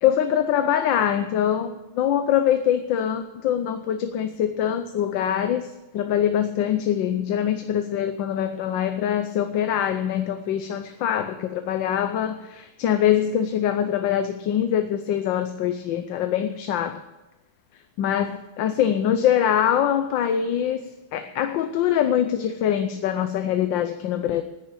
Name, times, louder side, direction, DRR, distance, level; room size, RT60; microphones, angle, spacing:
voice 1, 0.0-17.0 18.0-20.8 21.1-24.4, left 10 dB, 90° left, 8 dB, 1.5 m, -23 dB
10.0 x 10.0 x 8.7 m, 1.0 s
omnidirectional pair, 2.0 m